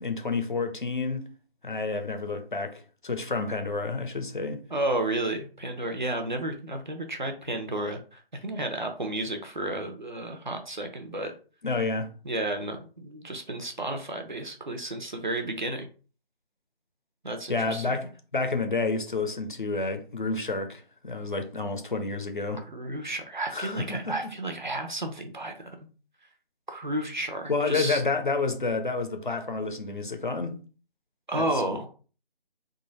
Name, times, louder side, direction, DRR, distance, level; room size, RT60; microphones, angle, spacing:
voice 1, 0.0-1.2 1.6-4.6 11.6-12.1 17.5-22.6 23.5-24.2 27.5-30.6 31.3-31.6, left 3 dB, 55° left, 0.7 m, -29 dB
voice 2, 4.7-11.3 12.2-15.9 17.2-18.0 22.7-25.7 26.7-28.0 31.3-31.9, right 1 dB, 50° right, 0.8 m, -32 dB
3.8 x 2.4 x 4.0 m
figure-of-eight pair, 160°, 30 cm